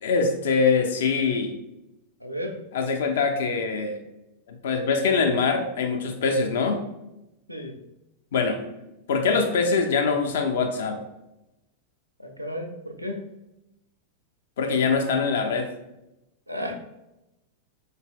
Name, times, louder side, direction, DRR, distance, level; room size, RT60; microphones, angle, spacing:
voice 1, 0.0-1.5 2.7-4.0 4.5-6.8 8.3-8.6 9.1-11.0 14.6-15.7, left 4 dB, 60° left, 5 dB, 0.5 m, -23 dB
voice 2, 2.2-2.6 7.5-7.8 12.2-13.2 16.5-16.8, equal, 90° right, 3 dB, 0.5 m, -33 dB
4.1 x 3.8 x 2.2 m, 0.93 s
figure-of-eight pair, 90°, 0 cm